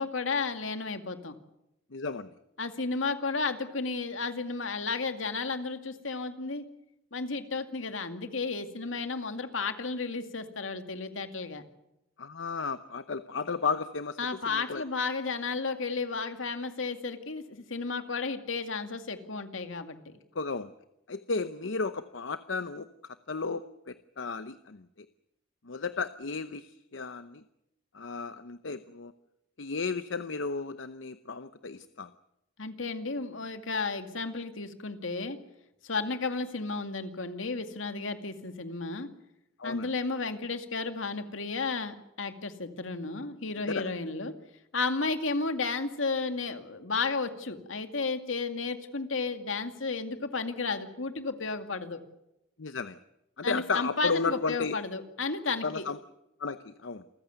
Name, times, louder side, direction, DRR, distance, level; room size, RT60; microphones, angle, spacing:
voice 1, 0.0-1.3 2.6-6.6 7.1-11.6 14.2-20.0 32.6-35.4 35.8-39.1 39.6-44.3 44.7-52.0 53.4-55.8, left 4 dB, 90° left, 7 dB, 2.3 m, -33 dB
voice 2, 1.9-2.3 12.2-14.2 14.5-14.8 20.3-20.7 21.1-22.9 23.3-24.8 25.7-27.4 27.9-29.1 29.6-32.1 39.6-39.9 43.7-43.9 52.6-53.0 53.4-54.7 55.6-56.0 56.4-57.0, left 4 dB, 70° left, 12 dB, 0.8 m, -33 dB
28.0 x 15.0 x 9.4 m, 0.88 s
head